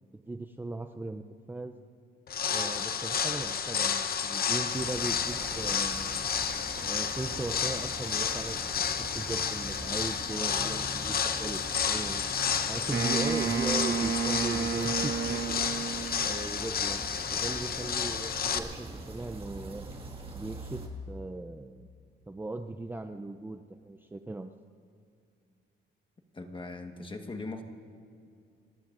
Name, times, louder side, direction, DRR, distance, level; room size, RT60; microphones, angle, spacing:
voice 1, 0.1-1.8 2.4-6.3 6.8-8.7 9.1-12.2 12.7-15.6 16.2-19.9 20.3-21.9 22.3-24.5, right 2 dB, 10° right, 6 dB, 0.5 m, -38 dB
sound 1, 2.3-18.6, left 7 dB, 50° left, 0.9 m, -31 dB
sound 2, 4.7-20.9, right 2 dB, 25° right, 1.8 m, -43 dB
Wind instrument woodwind instrument, 12.9-16.4, right 7 dB, 55° right, 1.2 m, -31 dB
voice 2, 26.3-27.6, left 3 dB, 25° left, 5 dB, 1.4 m, -39 dB
30.0 x 14.5 x 2.5 m, 2.4 s
cardioid pair, 90°, 20 cm